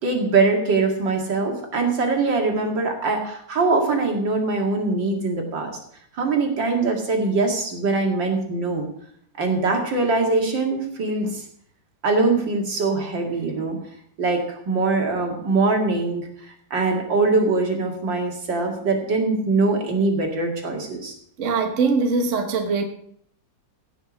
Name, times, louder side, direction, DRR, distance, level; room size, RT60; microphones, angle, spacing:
voice 1, 0.0-5.8 6.2-8.9 9.4-11.4 12.0-13.8 14.2-16.3 16.7-21.1, right 3 dB, 70° right, 2 dB, 2.9 m, -22 dB
voice 2, 21.4-22.8, right 4 dB, 45° right, 5 dB, 1.4 m, -22 dB
16.0 x 6.2 x 6.2 m, 0.67 s
omnidirectional pair, 2.1 m